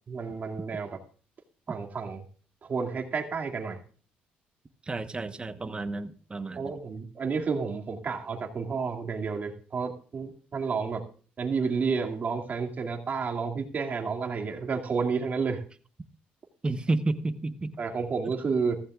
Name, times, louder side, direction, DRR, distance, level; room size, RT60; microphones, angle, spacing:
voice 1, 0.1-1.0 1.7-2.2 2.6-3.8 6.6-11.0 11.4-15.6 17.8-18.7, right 5 dB, 45° right, 2 dB, 2.3 m, -30 dB
voice 2, 4.9-6.6 16.6-17.7, right 2 dB, 25° right, 10 dB, 1.1 m, -31 dB
14.5 x 14.5 x 2.4 m, 0.42 s
supercardioid pair, 70°, 4 cm